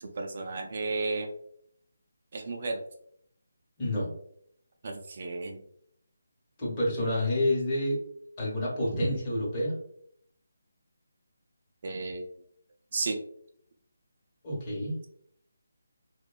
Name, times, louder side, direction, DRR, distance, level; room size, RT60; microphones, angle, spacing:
voice 1, 0.0-1.3 2.3-2.8 4.8-5.6 11.8-12.2 12.9-13.2, right 3 dB, 45° right, 2 dB, 0.3 m, -33 dB
voice 2, 3.8-4.1 6.6-8.0 8.4-9.8 14.4-14.9, left 1 dB, 25° left, -5 dB, 0.9 m, -28 dB
2.6 x 2.2 x 2.2 m, 0.67 s
figure-of-eight pair, 165°, 0 cm